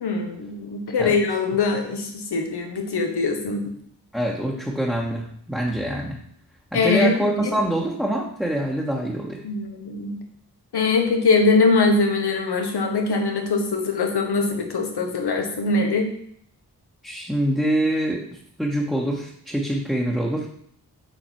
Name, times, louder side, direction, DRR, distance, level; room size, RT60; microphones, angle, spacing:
voice 1, 0.0-2.0 2.3-3.6 6.7-7.3 9.4-10.1 10.7-16.1, left 3 dB, 80° left, 3 dB, 1.3 m, -22 dB
voice 2, 4.1-6.2 6.7-9.4 17.0-18.2 18.6-20.5, right 1 dB, ahead, -3 dB, 1.3 m, -25 dB
7.6 x 4.2 x 4.5 m, 0.66 s
cardioid pair, 40°, 39 cm